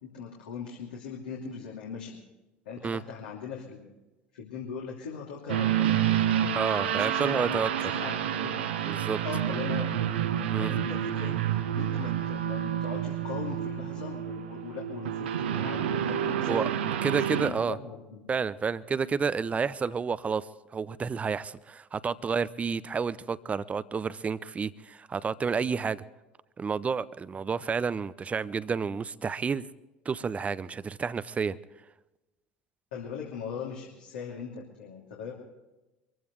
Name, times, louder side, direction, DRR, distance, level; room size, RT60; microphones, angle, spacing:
voice 1, 0.0-2.2 2.6-3.9 4.3-8.5 9.2-10.1 10.6-11.4 11.7-16.7 17.2-18.2 32.9-35.3, left 6 dB, 70° left, -3 dB, 2.9 m, -40 dB
sound 1, 5.5-17.5, right 10 dB, 70° right, 1.3 m, -29 dB
voice 2, 6.5-7.9 8.9-9.2 10.5-10.7 16.5-17.8 18.3-20.5 20.7-26.0 26.6-29.7 30.1-31.6, right 5 dB, 25° right, 17 dB, 0.7 m, -30 dB
25.0 x 15.5 x 3.2 m, 1.0 s
figure-of-eight pair, 65°, 6 cm